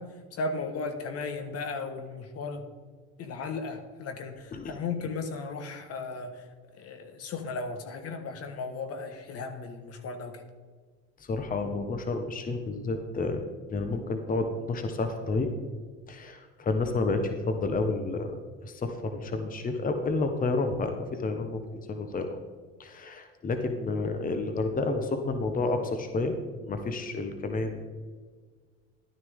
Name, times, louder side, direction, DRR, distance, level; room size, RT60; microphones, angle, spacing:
voice 1, 0.0-2.6 3.2-10.4 24.4-24.7, left 4 dB, 55° left, 7 dB, 1.4 m, -36 dB
voice 2, 11.2-13.4 13.7-15.5 16.1-22.4 22.8-26.3 26.7-27.8, left 3 dB, 30° left, 6 dB, 1.1 m, -30 dB
12.0 x 9.8 x 3.6 m, 1.5 s
supercardioid pair, 95°, 29 cm